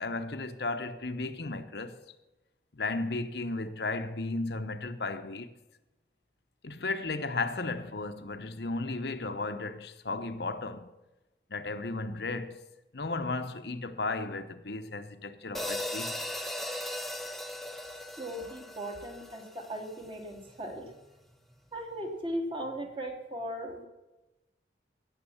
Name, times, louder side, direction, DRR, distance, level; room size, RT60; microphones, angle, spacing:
voice 1, 0.0-2.1 2.7-5.5 6.6-10.9 11.5-12.6 12.9-16.3, left 3 dB, 65° left, 1.0 m, -34 dB
sound 1, 15.5-19.9, left 1 dB, ahead, 0.8 m, -38 dB
voice 2, 18.2-20.9 21.7-23.9, right 1 dB, 30° right, 2.7 m, -37 dB
17.0 x 7.5 x 7.2 m
head